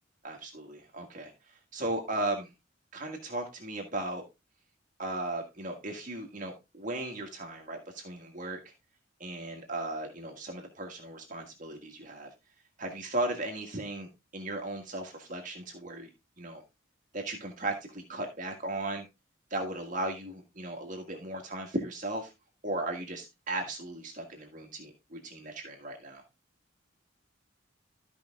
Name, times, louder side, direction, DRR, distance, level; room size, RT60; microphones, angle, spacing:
voice 1, 0.2-2.5 2.9-4.2 5.0-8.6 9.2-12.3 12.8-16.1 16.4-16.6 17.1-19.1 19.5-22.3 22.6-26.2, right 2 dB, 40° right, 2 dB, 1.7 m, -36 dB
13.5 x 5.3 x 3.5 m, 0.24 s
head